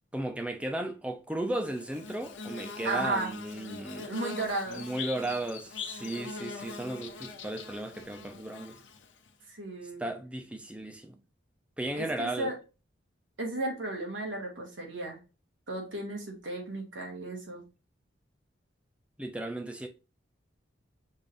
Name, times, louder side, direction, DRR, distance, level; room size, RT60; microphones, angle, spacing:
voice 1, 0.1-4.1 4.7-8.8 10.0-11.2 11.8-12.5 19.2-19.9, right 1 dB, 5° right, 0.6 m, -35 dB
Bird / Buzz, 1.6-9.3, left 4 dB, 85° left, 0.9 m, -42 dB
voice 2, 2.8-3.3 4.0-4.8 9.5-10.0 12.0-12.5 13.4-15.2 15.7-17.6, right 2 dB, 85° right, 2.0 m, -34 dB
5.4 x 3.4 x 2.6 m
head